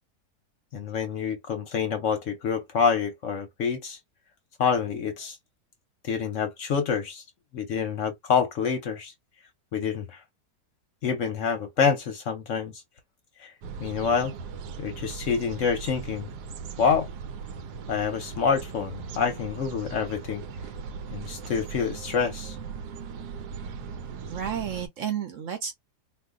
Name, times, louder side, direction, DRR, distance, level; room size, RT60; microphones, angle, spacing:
voice 1, 0.7-4.0 4.6-5.4 6.0-7.2 7.5-9.1 9.7-10.2 11.0-12.7 13.4-13.5 13.8-14.3 14.8-16.3 16.8-17.1 17.9-20.4 21.1-22.6, left 6 dB, 60° left, 0.9 m, -27 dB
sound 1, 13.6-24.9, right 5 dB, 90° right, 1.2 m, -39 dB
voice 2, 24.3-25.8, right 8 dB, 60° right, 0.9 m, -32 dB
2.6 x 2.4 x 3.6 m
omnidirectional pair, 1.7 m